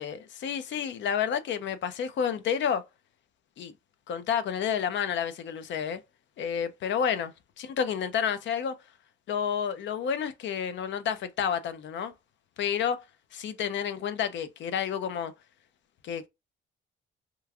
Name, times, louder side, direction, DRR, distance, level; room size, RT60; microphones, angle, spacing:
voice 1, 0.0-2.8 3.6-3.7 4.1-6.0 6.4-7.3 7.6-8.7 9.3-12.1 12.6-13.0 13.3-15.3 16.0-16.3, left 8 dB, 65° left, 0.5 m, -30 dB
3.0 x 2.4 x 2.3 m
cardioid pair, 90°, 20 cm